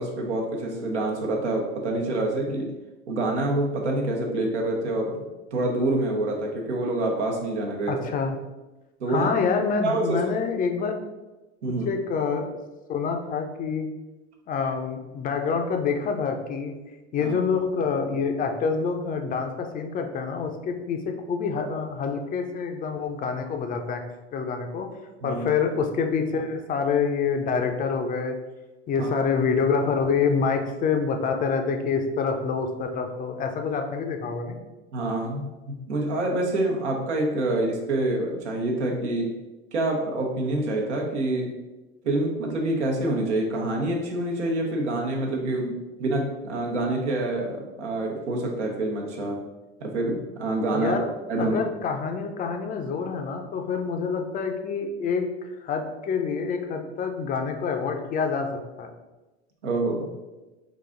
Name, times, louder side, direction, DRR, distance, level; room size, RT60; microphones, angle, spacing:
voice 1, 0.0-2.7 3.1-5.2 5.5-7.9 9.0-9.3 9.8-10.2 11.6-11.9 17.2-17.3 25.2-25.4 29.0-29.1 34.9-39.3 39.7-41.5 42.0-49.4 49.8-51.0 51.3-51.6 59.6-60.1, right 2 dB, 75° right, 0 dB, 1.0 m, -26 dB
voice 2, 7.9-8.4 9.1-11.0 11.7-12.5 12.9-13.9 14.5-16.8 17.1-24.0 24.3-24.9 25.2-28.4 28.9-34.6 50.7-51.1 51.4-58.9, left 5 dB, 25° left, 5 dB, 0.5 m, -27 dB
3.9 x 2.6 x 3.7 m, 1.1 s
hypercardioid pair, 90°, 34 cm